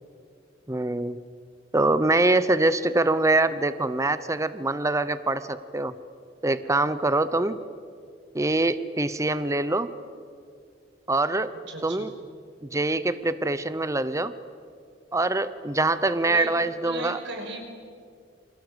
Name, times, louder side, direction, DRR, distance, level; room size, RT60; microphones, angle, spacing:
voice 1, 0.7-1.2 1.7-5.9 6.4-7.6 8.3-9.9 11.1-11.5 11.8-12.1 12.7-14.3 15.1-17.2, right 2 dB, 15° right, 13 dB, 0.8 m, -24 dB
voice 2, 11.7-12.1 16.2-16.5 16.8-17.6, right 2 dB, 65° right, 3 dB, 5.8 m, -36 dB
28.5 x 25.5 x 8.1 m, 2.3 s
head